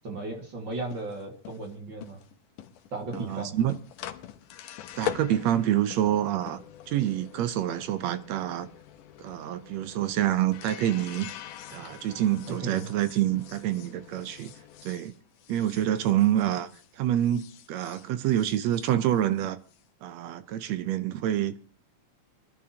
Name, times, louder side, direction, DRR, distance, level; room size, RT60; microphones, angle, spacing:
voice 1, 0.0-2.2 2.9-3.6 12.5-12.9, right 2 dB, 40° right, 2.3 m, -36 dB
sound 1, 0.7-16.9 17.2-19.8, left 12 dB, 80° left, 2.5 m, -43 dB
voice 2, 3.1-3.7 5.0-6.6 6.9-8.7 9.2-11.3 11.7-14.5 14.8-15.1 15.5-16.7 17.0-19.6 20.0-21.5, right 12 dB, 75° right, 1.7 m, -27 dB
25.5 x 11.0 x 2.8 m
omnidirectional pair, 3.7 m